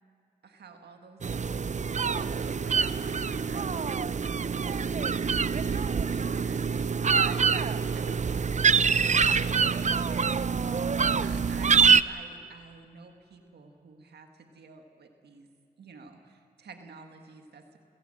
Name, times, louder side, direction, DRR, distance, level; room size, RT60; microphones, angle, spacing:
voice 1, 0.4-10.3 11.2-15.5 15.8-17.8, right 4 dB, 90° right, 5 dB, 1.8 m, -50 dB
sound 1, 1.2-12.0, right 5 dB, 45° right, 0.6 m, -25 dB
30.0 x 15.5 x 7.9 m, 2.5 s
cardioid pair, 45°, 17 cm